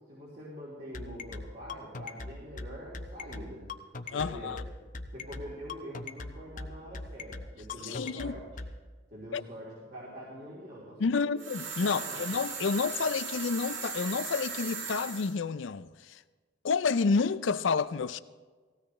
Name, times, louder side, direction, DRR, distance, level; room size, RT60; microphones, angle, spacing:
voice 1, 0.1-3.7 4.1-4.6 5.1-8.6 9.1-11.4 11.8-12.3, equal, 45° right, 3.4 m, -44 dB
sound 1, 0.9-8.7, left 3 dB, 45° left, 0.8 m, -40 dB
voice 2, 4.1-4.6 7.8-8.4 9.3-9.4 11.0-16.2 16.6-18.2, left 5 dB, 75° left, 0.5 m, -29 dB
sound 2, 11.4-15.3, right 5 dB, 85° right, 1.7 m, -38 dB
19.0 x 16.0 x 3.3 m
head